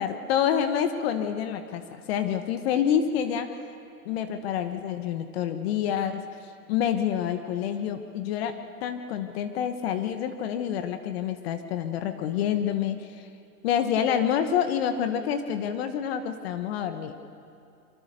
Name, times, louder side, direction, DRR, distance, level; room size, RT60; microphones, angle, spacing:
voice 1, 0.0-3.5 4.0-6.2 6.7-8.5 8.8-13.2 13.6-17.2, left 9 dB, 40° left, 8 dB, 1.3 m, -27 dB
27.0 x 24.0 x 6.7 m, 2.5 s
hypercardioid pair, 120°, 47 cm